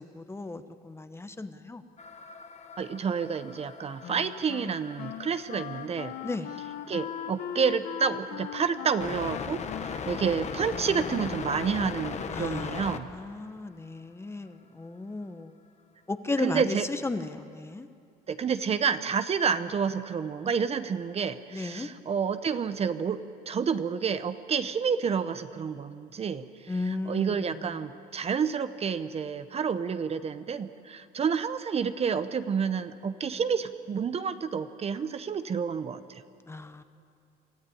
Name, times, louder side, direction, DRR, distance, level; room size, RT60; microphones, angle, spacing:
voice 1, 0.0-1.8 6.2-6.5 12.3-12.8 13.1-15.5 16.1-17.9 21.5-21.9 26.7-27.4 36.5-36.8, left 3 dB, 15° left, 10 dB, 1.0 m, -35 dB
sound 1, 2.0-13.0, left 6 dB, 40° left, 1.3 m, -39 dB
voice 2, 2.8-6.2 6.9-13.1 16.4-16.9 18.3-23.2 23.5-36.2, right 6 dB, 35° right, 11 dB, 0.8 m, -29 dB
Wind instrument woodwind instrument, 4.0-11.5, left 10 dB, 70° left, 1.2 m, -40 dB
24.5 x 14.0 x 9.9 m, 2.4 s
cardioid pair, 110°, 17 cm